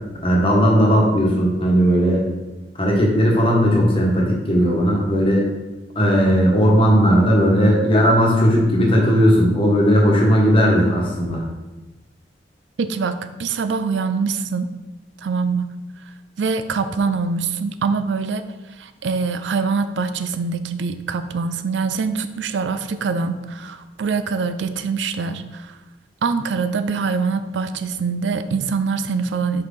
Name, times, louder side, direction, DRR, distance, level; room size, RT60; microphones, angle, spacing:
voice 1, 0.2-2.3 2.8-5.5 5.9-11.4, equal, 30° left, -2 dB, 1.2 m, -16 dB
voice 2, 12.8-14.7 15.2-15.7 16.4-18.5 18.8-25.8 26.2-29.6, right 5 dB, 85° right, 10 dB, 0.4 m, -24 dB
6.2 x 4.4 x 3.7 m, 1.1 s
head